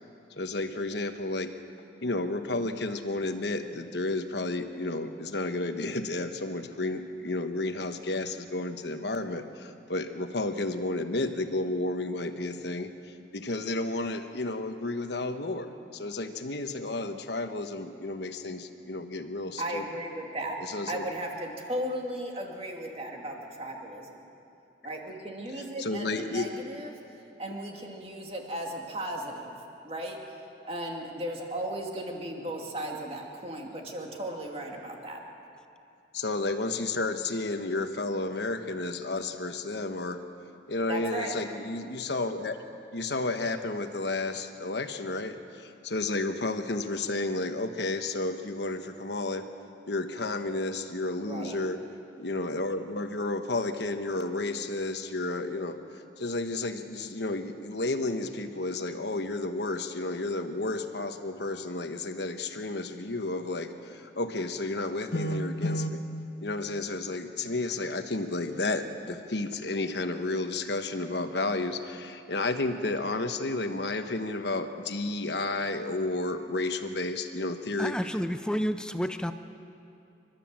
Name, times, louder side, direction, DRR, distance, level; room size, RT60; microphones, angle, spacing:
voice 1, 0.4-1.5 2.0-12.9 13.3-19.8 20.6-21.0 25.8-26.5 36.1-40.2 40.7-42.6 42.9-49.4 49.9-51.8 52.2-66.0 66.4-77.9, left 2 dB, 65° left, 7 dB, 1.2 m, -32 dB
voice 2, 19.6-20.6 20.9-24.2 24.8-29.6 29.8-30.4 30.6-35.2 40.9-41.4 51.2-51.6, right 1 dB, 30° right, 1 dB, 2.3 m, -36 dB
voice 3, 77.8-79.3, equal, 5° left, 9 dB, 0.5 m, -30 dB
29.0 x 12.5 x 7.5 m, 2.7 s
head